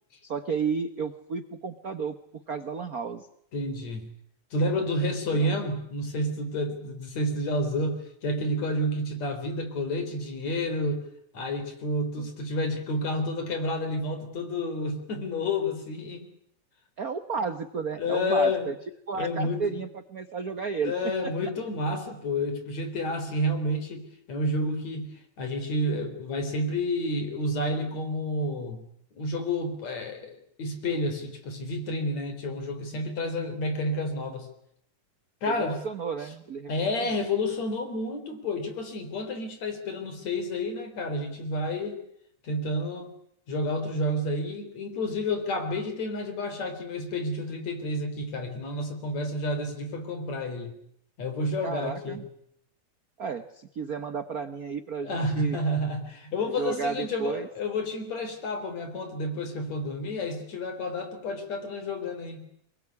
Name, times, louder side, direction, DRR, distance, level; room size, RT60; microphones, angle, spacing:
voice 1, 0.2-2.2 2.5-3.3 5.3-5.5 12.2-12.3 17.0-18.7 19.1-21.3 35.5-36.9 51.6-52.2 53.2-55.6 56.4-57.5, right 5 dB, 80° right, 10 dB, 0.8 m, -32 dB
voice 2, 3.5-4.1 4.5-11.0 11.3-16.3 18.0-18.7 19.1-19.8 20.8-28.8 29.1-34.5 35.4-35.8 36.7-42.0 42.4-43.1 43.5-50.7 51.2-52.2 55.0-62.4, left 1 dB, 60° left, 7 dB, 5.1 m, -30 dB
24.5 x 21.0 x 9.6 m, 0.72 s
omnidirectional pair, 3.5 m